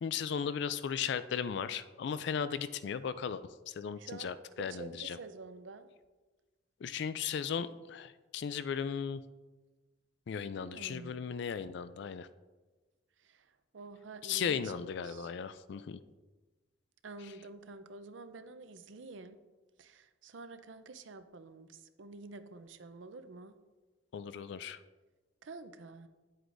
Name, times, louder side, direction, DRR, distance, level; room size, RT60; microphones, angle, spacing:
voice 1, 0.0-5.2 6.8-9.2 10.3-12.3 14.2-16.0 24.1-24.8, left 7 dB, 65° left, 14 dB, 0.3 m, -36 dB
voice 2, 4.0-4.3 4.6-5.9 10.5-11.2 13.2-15.3 17.0-19.4 19.8-23.5 25.4-26.1, right 3 dB, 85° right, 10 dB, 0.6 m, -49 dB
10.0 x 7.9 x 2.6 m, 1.2 s
head